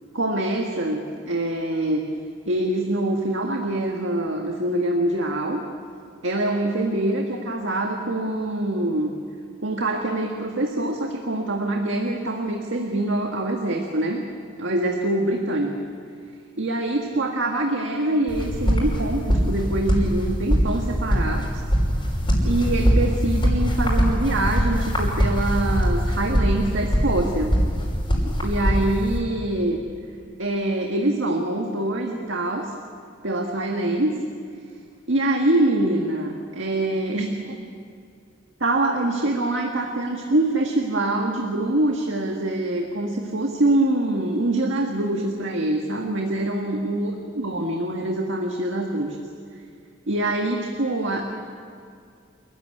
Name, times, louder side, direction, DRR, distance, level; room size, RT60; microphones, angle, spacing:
voice 1, 0.1-2.0 2.5-5.6 6.2-9.1 9.6-14.2 14.6-15.7 16.6-21.5 22.4-27.5 28.4-29.8 30.4-32.7 33.2-34.1 35.1-37.6 38.6-49.2 50.1-51.2, right 1 dB, 80° right, 2 dB, 1.8 m, -24 dB
sound 1, 18.3-29.2, equal, 25° left, 5.8 m, -22 dB
27.5 x 15.0 x 9.9 m, 2.3 s
head